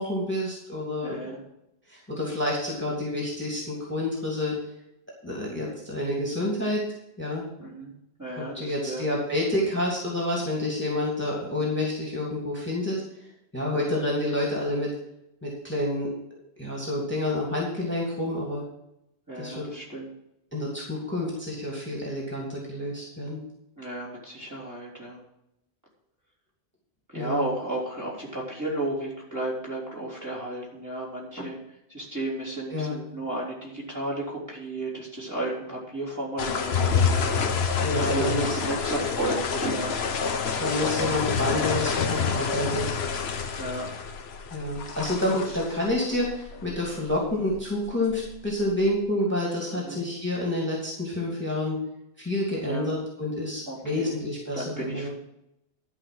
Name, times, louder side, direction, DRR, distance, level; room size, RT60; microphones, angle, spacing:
voice 1, 0.0-1.2 1.9-4.5 5.2-6.8 7.2-7.4 8.4-13.0 13.5-14.9 15.4-16.1 16.6-18.6 19.4-19.7 20.5-23.4 27.1-27.5 32.7-33.0 37.8-38.6 40.6-42.9 44.5-51.8 52.2-55.1, left 1 dB, 10° left, -3 dB, 2.8 m, -28 dB
voice 2, 1.0-1.4 7.6-7.9 8.2-9.0 13.7-13.8 19.3-20.1 23.8-25.2 27.1-31.6 31.9-40.0 43.6-43.9 49.8-50.0 52.6-52.9 53.7-54.1 54.5-55.1, right 1 dB, 15° right, -5 dB, 3.7 m, -33 dB
sound 1, 36.4-48.9, left 5 dB, 70° left, 1.2 m, -28 dB
12.0 x 5.5 x 7.8 m, 0.83 s
omnidirectional pair, 1.1 m